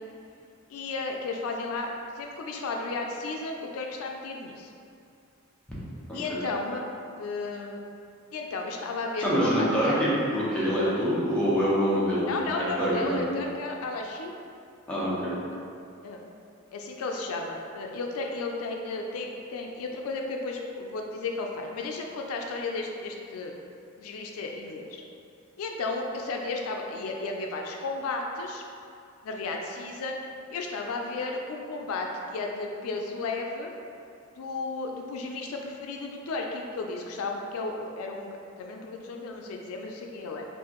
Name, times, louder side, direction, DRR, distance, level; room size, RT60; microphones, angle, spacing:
voice 1, 0.7-4.7 6.1-6.8 7.2-7.8 8.3-10.0 12.3-14.3 16.0-16.2 16.7-23.5 24.0-25.0 25.6-28.6 29.2-30.2 30.5-33.7 34.4-40.5, left 3 dB, 80° left, 2 dB, 0.4 m, -33 dB
voice 2, 9.2-12.3 12.6-13.2 14.9-15.3, equal, 5° left, -9 dB, 0.9 m, -25 dB
4.5 x 2.4 x 2.9 m, 2.5 s
head